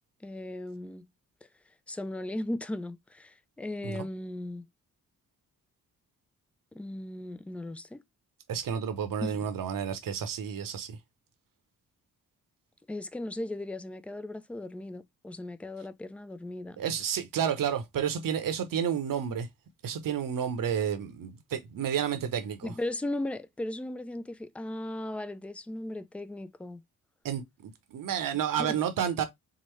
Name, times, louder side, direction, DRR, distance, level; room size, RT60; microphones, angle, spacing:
voice 1, 0.2-1.1 1.9-4.7 6.7-8.0 9.2-9.4 12.9-16.8 22.6-26.8 28.6-28.8, left 1 dB, 5° left, 0.3 m, -37 dB
voice 2, 8.5-11.0 16.8-19.5 19.8-22.7 27.2-29.2, right 8 dB, 60° right, 0.8 m, -31 dB
3.7 x 2.0 x 3.1 m
supercardioid pair, 55°, 37 cm